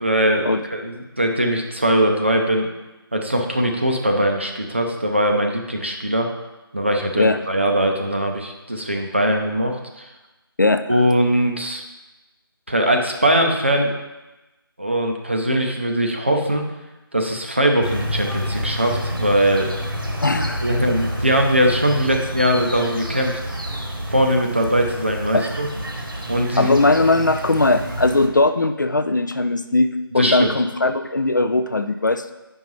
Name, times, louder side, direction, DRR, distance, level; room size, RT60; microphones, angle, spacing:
voice 1, 0.0-2.7 3.1-6.3 6.7-10.1 10.9-11.8 12.7-13.9 14.8-16.7 17.1-19.7 20.6-23.3 24.1-25.7 26.3-26.7 30.2-30.5, right 1 dB, 30° right, 2 dB, 0.5 m, -20 dB
sound 1, 17.8-28.3, equal, 60° right, 1.2 m, -28 dB
voice 2, 20.2-20.7 26.6-32.3, left 2 dB, 50° left, 10 dB, 0.4 m, -19 dB
8.5 x 5.3 x 3.1 m, 1.1 s
figure-of-eight pair, 180°, 13 cm